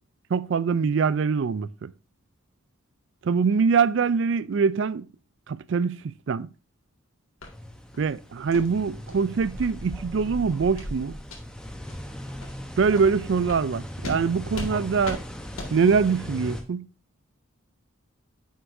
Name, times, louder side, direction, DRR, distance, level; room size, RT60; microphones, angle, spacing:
voice 1, 0.3-1.9 3.2-5.1 5.5-6.0 6.3-6.5 8.0-11.2 12.8-15.2 15.7-16.9, right 5 dB, 60° right, 0.4 m, -23 dB
sound 1, 7.4-7.5 7.9-8.1 8.5-8.7 9.1-9.2 9.6-9.7 10.1-10.3 10.8-10.9 11.2-11.4 11.9-12.0 12.4-12.5 12.9-13.1 13.5-13.6 14.0-14.2 14.5-14.7 15.0-15.2 15.6-15.7, left 2 dB, 90° left, 2.0 m, -37 dB
sound 2, 7.5-16.6, equal, 5° left, 0.9 m, -38 dB
9.4 x 6.4 x 2.6 m
head